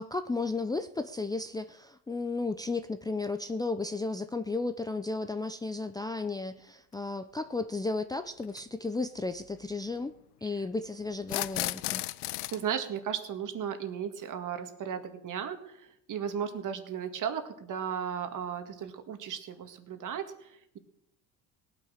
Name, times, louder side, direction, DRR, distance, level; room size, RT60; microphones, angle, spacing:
voice 1, 0.0-10.1 10.4-12.1, left 3 dB, 10° left, 9 dB, 0.5 m, -34 dB
sound 1, 6.9-7.0 8.4-8.6 11.2-12.6, left 20 dB, 80° left, 0.6 m, -33 dB
voice 2, 12.5-20.8, right 8 dB, 45° right, 7 dB, 2.0 m, -35 dB
18.0 x 9.2 x 6.5 m, 0.79 s
supercardioid pair, 100°, 41 cm